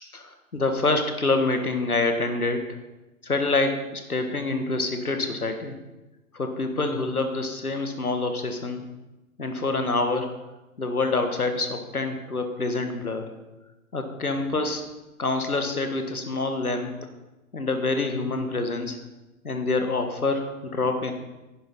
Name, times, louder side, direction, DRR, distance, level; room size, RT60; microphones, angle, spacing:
voice 1, 0.1-2.6 3.2-5.8 6.3-8.8 9.4-10.3 10.8-13.3 13.9-14.8 15.2-16.9 17.5-19.0 19.4-21.1, left 3 dB, 85° left, 6 dB, 1.5 m, -26 dB
10.5 x 10.0 x 4.2 m, 1.1 s
figure-of-eight pair, 115°, 43 cm